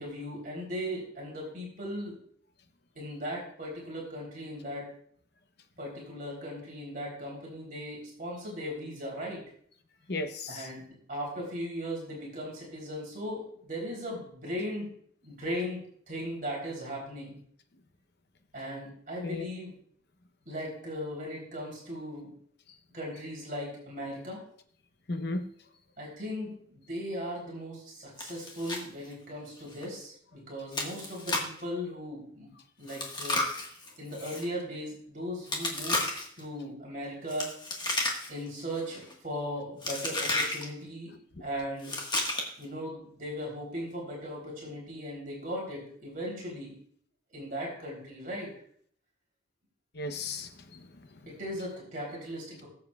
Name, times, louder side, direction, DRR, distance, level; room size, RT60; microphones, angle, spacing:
voice 1, 0.0-2.2 2.9-4.8 5.8-9.4 10.5-14.9 15.2-17.4 18.5-19.7 20.4-22.3 22.9-24.4 26.0-32.5 32.8-33.4 34.0-36.1 36.4-37.5 38.3-41.1 41.4-42.0 42.6-46.7 47.3-48.5 51.2-52.7, equal, 40° right, -3 dB, 3.4 m, -38 dB
voice 2, 10.1-10.7 19.2-19.5 25.1-25.5 49.9-51.2, left 2 dB, 50° left, 8 dB, 0.9 m, -35 dB
Chewing mastication, 28.2-28.8 29.1-29.2 29.7-29.9 30.7-31.6 32.9-34.4 35.5-36.4 37.3-38.5 38.7-39.1 39.8-40.6 41.8-42.6, left 2 dB, 20° left, 1.5 m, -32 dB
19.5 x 7.3 x 2.4 m, 0.62 s
head